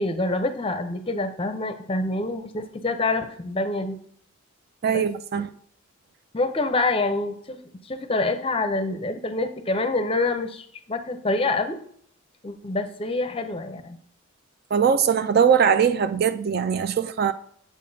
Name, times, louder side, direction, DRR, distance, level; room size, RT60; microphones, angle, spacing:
voice 1, 0.0-4.0 4.9-5.1 5.4-5.5 6.3-7.6 7.8-11.8 12.4-14.0, left 2 dB, 25° left, 0.5 m, -26 dB
voice 2, 4.8-5.5 14.7-17.3, right 7 dB, 45° right, 0.3 m, -21 dB
8.5 x 7.4 x 2.7 m
head